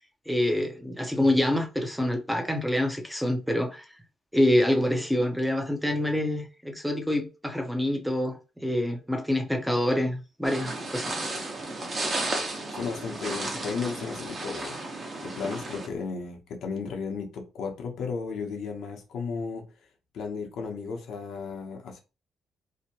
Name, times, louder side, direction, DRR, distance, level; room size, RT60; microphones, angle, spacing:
voice 1, 0.3-3.9 4.3-11.2, left 1 dB, ahead, 0.6 m, -26 dB
sound 1, 10.4-15.9, right 2 dB, 40° right, 0.9 m, -33 dB
voice 2, 12.7-14.8 15.2-19.7 20.1-22.0, left 5 dB, 75° left, 0.8 m, -34 dB
2.7 x 2.2 x 2.8 m
cardioid pair, 90°, 0 cm